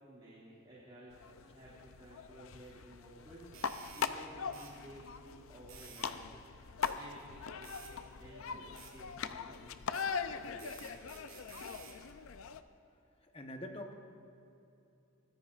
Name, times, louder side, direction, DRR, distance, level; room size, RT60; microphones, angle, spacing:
voice 1, 0.0-11.1, right 1 dB, 25° right, -9 dB, 2.2 m, -55 dB
sound 1, 1.1-12.6, left 6 dB, 75° left, 0.5 m, -41 dB
sound 2, 3.5-4.1 4.5-4.7 5.7-6.1 6.8-7.0 7.6-7.9 8.8-8.9 9.9-10.1 10.6-12.0, right 7 dB, 75° right, 2.3 m, -53 dB
voice 2, 13.3-13.9, left 1 dB, 25° left, 4 dB, 0.9 m, -44 dB
22.5 x 14.5 x 2.4 m, 2.8 s
head